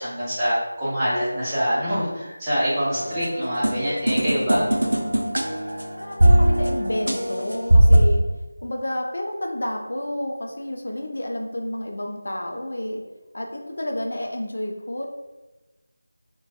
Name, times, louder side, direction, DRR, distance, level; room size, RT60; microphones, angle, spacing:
voice 1, 0.0-4.6, equal, 10° right, -12 dB, 0.8 m, -25 dB
sound 1, 2.9-8.0, right 1 dB, 85° right, 0.5 m, -20 dB
voice 2, 5.9-8.2 8.6-13.0 13.3-15.1, left 1 dB, 60° left, 2 dB, 0.4 m, -30 dB
3.0 x 2.2 x 2.8 m, 1.1 s
figure-of-eight pair, 170°, 0 cm